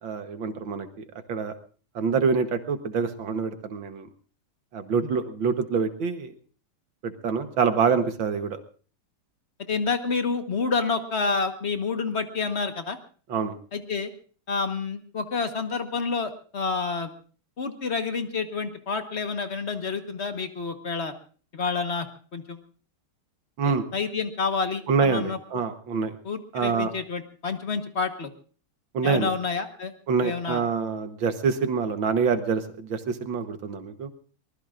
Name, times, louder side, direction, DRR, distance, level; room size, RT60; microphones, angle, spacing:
voice 1, 0.0-0.9 1.3-1.5 2.0-4.1 4.7-6.3 7.0-8.6 13.3-13.6 23.6-23.8 24.9-26.2 26.5-26.9 28.9-29.3 30.1-34.1, right 5 dB, 65° right, 8 dB, 1.9 m, -26 dB
voice 2, 9.6-13.0 13.7-14.1 14.5-17.1 17.6-21.1 21.5-22.1 22.3-22.6 23.6-25.6 26.2-28.3 29.0-29.9 30.2-30.6, left 4 dB, 35° left, 7 dB, 1.3 m, -29 dB
23.5 x 20.0 x 2.5 m, 0.41 s
omnidirectional pair, 2.4 m